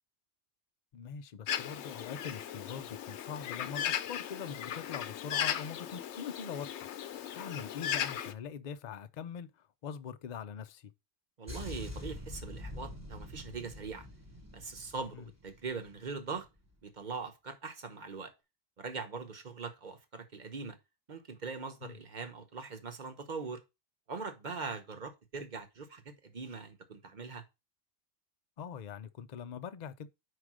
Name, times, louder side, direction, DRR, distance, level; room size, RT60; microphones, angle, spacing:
voice 1, 0.9-7.1 7.3-10.9 15.1-15.3 21.8-22.0 28.6-30.1, left 7 dB, 50° left, 0.6 m, -43 dB
Bird, 1.5-8.3, left 10 dB, 80° left, 0.9 m, -37 dB
voice 2, 11.4-14.1 14.5-16.5 16.8-18.3 18.8-20.8 21.1-23.6 24.1-27.4, right 4 dB, 45° right, 1.2 m, -41 dB
sound 1, 11.5-16.0 16.3-16.6, left 2 dB, 15° right, 1.2 m, -45 dB
5.0 x 4.9 x 6.1 m
omnidirectional pair, 1.1 m